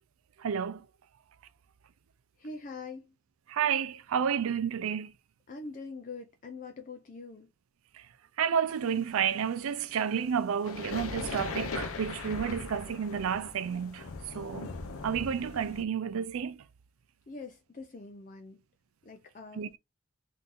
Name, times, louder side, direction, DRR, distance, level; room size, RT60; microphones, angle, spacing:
voice 1, 0.4-0.8 3.5-5.1 8.4-14.0 14.3-14.7 15.0-16.6 19.6-19.7, right 7 dB, 85° right, 0.4 m, -30 dB
voice 2, 2.4-3.1 5.5-7.5 17.3-18.6 19.0-19.8, left 3 dB, 40° left, 0.4 m, -44 dB
sound 1, 8.7-15.8, left 4 dB, 85° left, 0.7 m, -40 dB
3.7 x 2.7 x 2.5 m
head